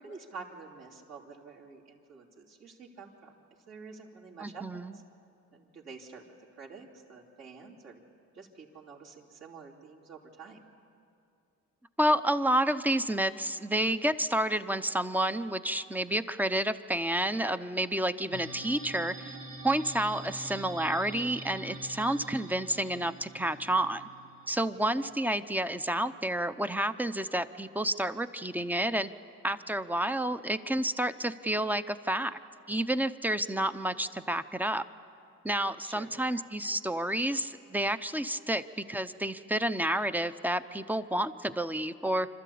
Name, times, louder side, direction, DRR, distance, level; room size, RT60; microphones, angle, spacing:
voice 1, 0.0-3.3 3.7-5.0 5.5-6.2 6.5-8.0 8.3-10.6 29.5-29.6 35.8-36.1, right 4 dB, 60° right, -3 dB, 3.2 m, -48 dB
voice 2, 4.4-5.0 12.0-19.3 19.6-24.1 24.5-29.1 29.4-32.4 32.7-34.8 35.4-42.3, right 1 dB, 5° right, 12 dB, 0.6 m, -30 dB
sound 1, 18.3-24.9, right 2 dB, 80° right, 2.9 m, -45 dB
26.5 x 13.0 x 8.5 m, 2.6 s
cardioid pair, 90°, 30 cm